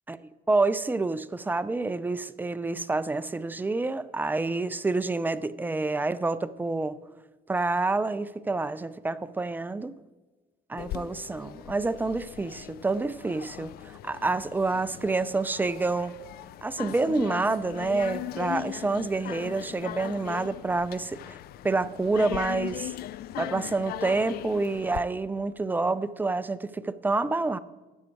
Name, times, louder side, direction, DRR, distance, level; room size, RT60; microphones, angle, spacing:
voice 1, 0.5-7.0 7.5-10.0 10.7-16.1 16.6-21.4 21.6-22.9 23.4-27.6, right 3 dB, 10° right, 0.4 m, -28 dB
sound 1, 10.8-25.0, left 13 dB, 65° left, 0.4 m, -39 dB
12.5 x 9.0 x 4.5 m
cardioid pair, 110°, 17 cm